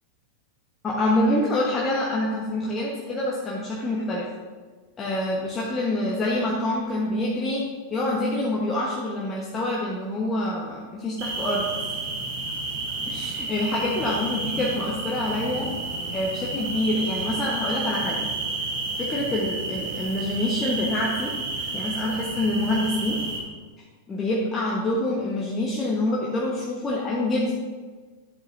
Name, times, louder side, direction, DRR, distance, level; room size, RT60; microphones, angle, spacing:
voice 1, 0.8-4.3 5.0-7.6 7.9-11.7 13.1-15.7 16.1-18.3 19.0-21.3 21.7-23.2 24.1-27.5, left 1 dB, 20° left, -4 dB, 1.2 m, -26 dB
sound 1, 11.2-23.4, right 3 dB, 50° right, 2.7 m, -31 dB
11.0 x 7.5 x 2.7 m, 1.4 s
figure-of-eight pair, 90°, 0 cm